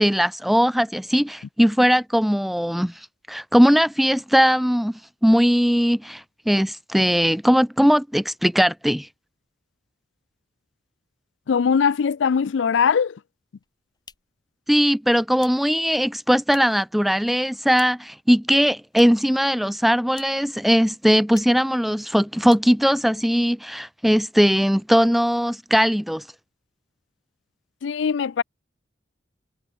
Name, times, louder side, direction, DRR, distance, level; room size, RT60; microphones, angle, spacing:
voice 1, 0.0-3.0 3.3-9.1 14.7-26.2, equal, ahead, 0.3 m, -19 dB
voice 2, 11.5-13.1 27.8-28.4, left 6 dB, 75° left, 0.4 m, -21 dB
sound 1, 13.5-16.9 17.2-18.2 18.4-19.4 19.6-20.6 20.8-20.9 21.3-21.7 22.0-22.2 22.4-23.1, left 6 dB, 20° left, 4.7 m, -50 dB
head